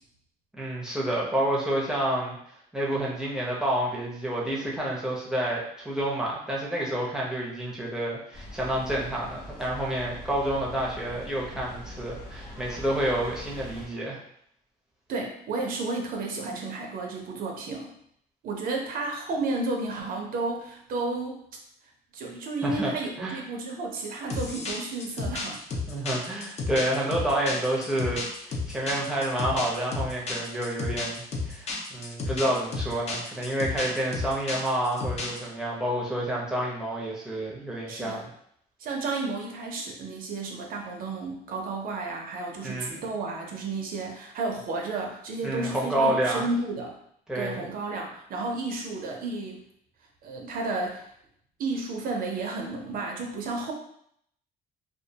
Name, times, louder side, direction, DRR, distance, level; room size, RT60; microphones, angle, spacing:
voice 1, 0.6-2.4 2.7-14.2 22.6-22.9 23.2-23.4 25.9-38.2 42.6-43.0 45.4-46.5 47.3-47.7, right 1 dB, 5° right, -5 dB, 0.6 m, -29 dB
sound 1, 8.3-13.9, left 1 dB, 60° left, 0.9 m, -42 dB
voice 2, 15.1-17.9 18.4-21.5 22.1-25.6 37.9-38.3 38.8-47.0 47.3-49.6 50.2-51.1 51.6-53.7, right 3 dB, 60° right, 1 dB, 0.5 m, -32 dB
sound 2, 24.3-35.5, left 3 dB, 40° left, 0.5 m, -32 dB
2.3 x 2.2 x 2.7 m, 0.70 s
cardioid pair, 110°, 17 cm